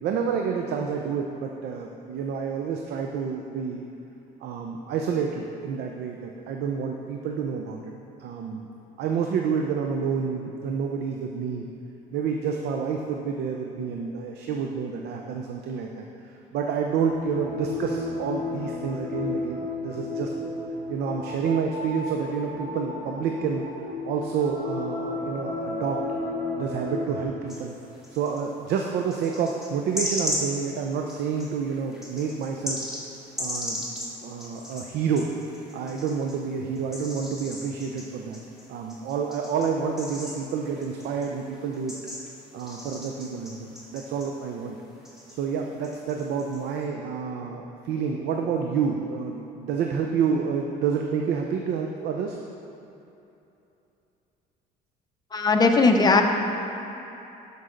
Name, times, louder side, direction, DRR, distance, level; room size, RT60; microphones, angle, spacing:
voice 1, 0.0-3.8 4.4-7.9 8.2-8.7 9.0-11.7 12.1-20.3 20.9-23.6 24.0-26.0 26.6-27.7 28.1-32.8 33.4-35.3 35.7-38.4 38.7-41.9 42.5-44.8 45.3-52.4, right 6 dB, 75° right, 2 dB, 0.6 m, -29 dB
sound 1, 17.1-27.2, left 2 dB, 30° right, 1.9 m, -33 dB
sound 2, 27.5-28.5 29.1-36.4 36.8-44.8 45.0-46.9, left 1 dB, ahead, 1.9 m, -37 dB
voice 2, 55.3-56.2, left 3 dB, 25° left, 3 dB, 0.8 m, -18 dB
12.5 x 5.4 x 3.9 m, 2.9 s
cardioid pair, 110°, 17 cm